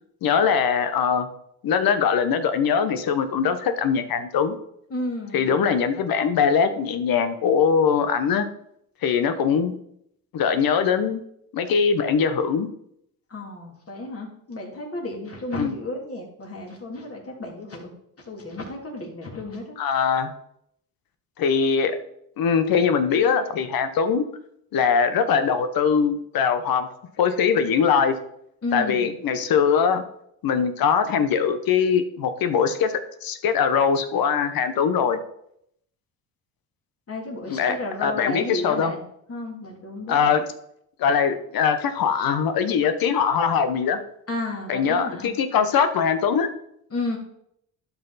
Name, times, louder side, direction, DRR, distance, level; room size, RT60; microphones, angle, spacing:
voice 1, 0.2-1.3 1.6-4.6 5.3-8.5 9.0-9.7 10.3-11.2 11.5-12.7 15.6-15.7 19.8-20.3 21.4-22.0 22.4-24.2 24.7-26.9 27.2-28.1 28.7-30.0 30.4-32.9 33.2-35.2 37.5-37.8 38.0-38.9 40.1-40.5 41.0-44.0 44.7-46.5, left 6 dB, 65° left, 10 dB, 1.1 m, -21 dB
voice 2, 4.9-5.5 13.3-17.9 18.3-19.8 28.6-29.1 37.1-39.0 39.3-40.2 44.3-45.3 46.9-47.2, left 2 dB, 35° left, -1 dB, 3.0 m, -32 dB
11.5 x 5.8 x 4.2 m, 0.73 s
cardioid pair, 90°, 38 cm